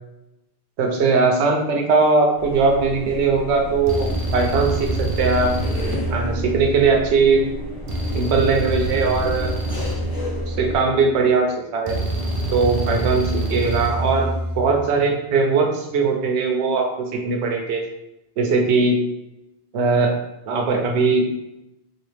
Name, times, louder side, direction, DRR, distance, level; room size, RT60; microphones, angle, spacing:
voice 1, 0.8-5.5 6.1-7.4 8.1-9.5 10.5-11.5 11.7-12.0 12.5-16.9 17.1-17.8 18.4-19.0 19.7-20.2 20.5-21.3, right 4 dB, 80° right, 2 dB, 0.9 m, -20 dB
sound 1, 2.4-10.8, equal, 30° left, 0.5 m, -32 dB
sound 2, 2.8-3.1 3.9-7.1 7.9-11.1 11.9-14.8, right 1 dB, 45° right, 0.4 m, -26 dB
4.0 x 2.4 x 3.2 m, 0.92 s
omnidirectional pair, 1.1 m